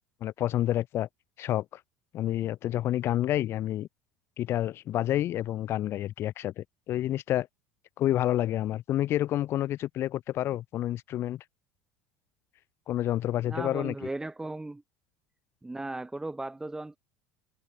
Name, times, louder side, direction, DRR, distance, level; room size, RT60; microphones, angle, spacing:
voice 1, 0.2-1.1 1.4-1.6 2.1-3.9 4.4-7.5 8.0-11.4 12.9-13.9, left 13 dB, 50° left, 1.1 m, -29 dB
voice 2, 13.4-14.8 15.6-17.0, right 2 dB, 10° right, 3.1 m, -36 dB
hypercardioid pair, 80°, 5 cm